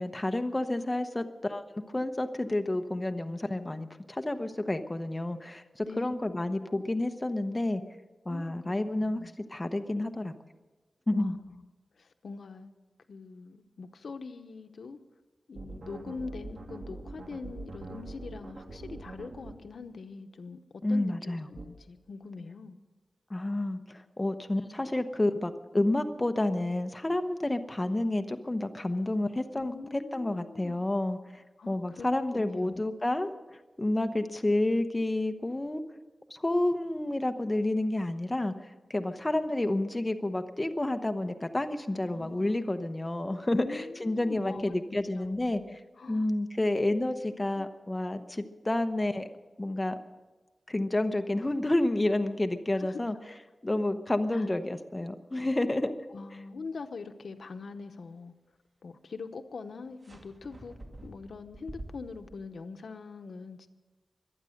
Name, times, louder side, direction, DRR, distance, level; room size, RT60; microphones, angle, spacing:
voice 1, 0.0-7.8 8.3-9.2 9.5-10.3 11.1-11.4 20.8-21.5 23.3-31.2 31.7-33.3 33.8-35.8 36.3-38.5 38.9-45.8 46.1-49.3 49.6-50.0 50.7-55.9 56.3-56.4, left 1 dB, 20° left, 7 dB, 0.9 m, -30 dB
voice 2, 5.8-6.5 8.3-9.4 11.1-11.7 12.0-12.7 13.1-15.0 15.5-22.8 29.5-30.8 31.6-32.1 32.3-32.9 42.0-42.8 43.4-46.3 47.6-47.7 52.7-53.0 54.3-54.5 56.1-58.3 58.8-63.7, left 4 dB, 85° left, 8 dB, 0.9 m, -43 dB
sound 1, 15.5-19.5 21.6-21.7, right 3 dB, 80° right, 2.5 m, -43 dB
sound 2, 60.0-62.4, right 1 dB, 45° right, 2.5 m, -47 dB
24.0 x 9.1 x 6.5 m, 1.2 s
wide cardioid pair, 95°, 0 cm